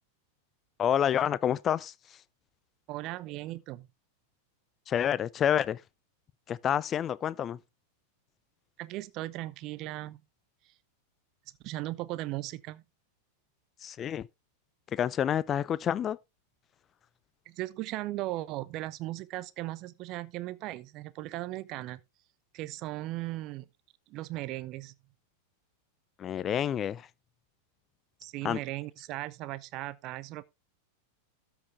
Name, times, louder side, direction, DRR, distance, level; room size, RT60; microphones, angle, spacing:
voice 1, 0.8-1.9 4.9-5.8 6.5-7.6 13.8-14.3 14.9-16.2 26.2-27.1 28.4-28.6, left 9 dB, 25° left, 0.5 m, -28 dB
voice 2, 2.9-3.9 8.8-10.2 11.6-12.8 17.5-22.0 22.5-23.7 24.1-24.9 28.2-30.4, right 17 dB, 40° right, 0.7 m, -37 dB
13.0 x 6.1 x 3.4 m
figure-of-eight pair, 90°, 0 cm